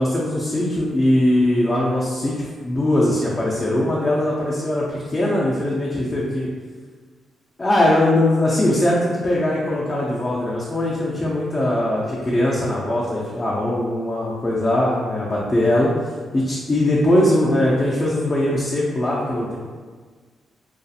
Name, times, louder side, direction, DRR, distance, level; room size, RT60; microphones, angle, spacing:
voice 1, 0.0-6.5 7.6-15.9 16.3-19.6, left 1 dB, 25° left, -5 dB, 0.4 m, -20 dB
2.3 x 2.3 x 2.7 m, 1.5 s
cardioid pair, 105°, 0 cm